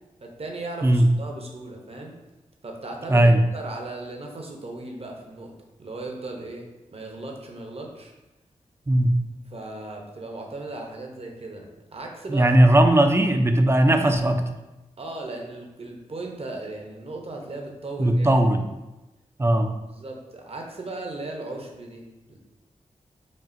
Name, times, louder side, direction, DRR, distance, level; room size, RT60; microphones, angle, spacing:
voice 1, 0.2-2.2 2.6-5.5 5.8-6.7 6.9-8.1 9.5-12.5 15.0-18.3 19.9-22.4, right 2 dB, 45° right, 1 dB, 0.8 m, -37 dB
voice 2, 3.1-3.4 8.9-9.2 12.3-14.4 18.0-18.6 19.4-19.7, right 1 dB, 20° right, 5 dB, 0.5 m, -18 dB
5.2 x 2.4 x 2.6 m, 1.0 s
cardioid pair, 40°, 14 cm